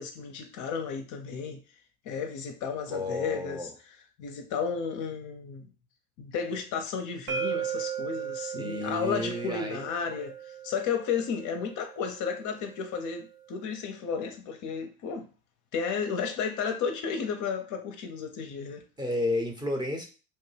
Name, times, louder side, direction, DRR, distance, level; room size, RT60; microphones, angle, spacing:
voice 1, 0.0-1.6 2.0-3.7 4.2-5.7 6.2-15.3 15.7-18.8, left 6 dB, 45° left, 0.5 m, -33 dB
voice 2, 2.9-3.7 8.6-9.9 19.0-20.1, left 1 dB, 10° right, 0.6 m, -31 dB
sound 1, 7.3-13.1, right 8 dB, 85° right, 0.7 m, -37 dB
3.0 x 2.1 x 3.2 m
hypercardioid pair, 80°, 44 cm